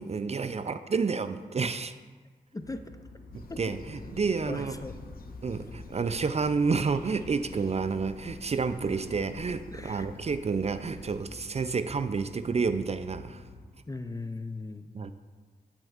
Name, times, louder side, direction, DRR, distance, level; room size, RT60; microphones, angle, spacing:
voice 1, 0.0-1.9 3.3-4.7 5.4-13.4 14.9-15.1, right 5 dB, 40° right, 11 dB, 0.4 m, -30 dB
voice 2, 2.5-2.9 3.5-3.7 4.5-5.0 9.7-10.1 13.9-14.9, left 3 dB, 20° left, 9 dB, 0.5 m, -38 dB
sound 1, 2.6-13.7, left 2 dB, 90° left, 1.0 m, -50 dB
sound 2, 3.3-11.2, left 4 dB, 60° left, 0.7 m, -48 dB
13.0 x 4.4 x 2.4 m, 1.4 s
cardioid pair, 45°, 17 cm